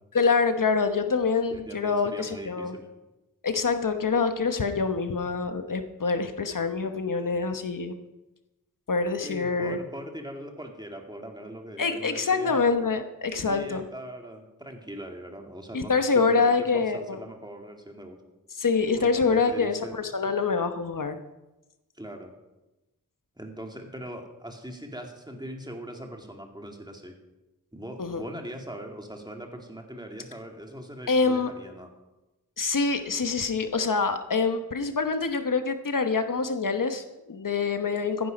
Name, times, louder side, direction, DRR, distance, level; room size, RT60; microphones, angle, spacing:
voice 1, 0.1-2.8 3.4-7.9 8.9-9.8 11.8-13.8 15.7-17.2 18.6-21.2 28.0-28.2 31.1-31.5 32.6-38.3, left 4 dB, 80° left, 8 dB, 1.0 m, -25 dB
voice 2, 1.5-2.9 9.2-12.6 13.4-18.2 19.0-20.0 22.0-22.3 23.4-27.2 27.7-31.9, right 1 dB, 15° right, 3 dB, 2.3 m, -40 dB
15.0 x 10.0 x 5.2 m, 1.0 s
wide cardioid pair, 55°, 32 cm